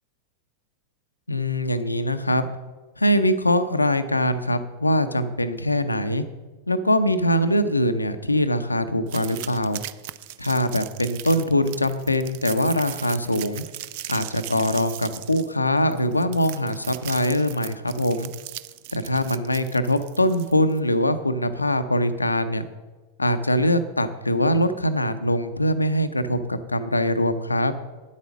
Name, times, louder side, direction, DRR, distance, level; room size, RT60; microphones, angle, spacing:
voice 1, 1.3-2.5 3.0-6.2 6.7-9.8 10.4-13.6 14.1-18.3 18.9-22.7 23.2-27.7, left 1 dB, 85° left, 10 dB, 0.6 m, -23 dB
sound 1, 9.1-20.8, right 15 dB, 50° right, 0.4 m, -38 dB
9.7 x 8.3 x 6.2 m, 1.2 s
figure-of-eight pair, 90°, 0 cm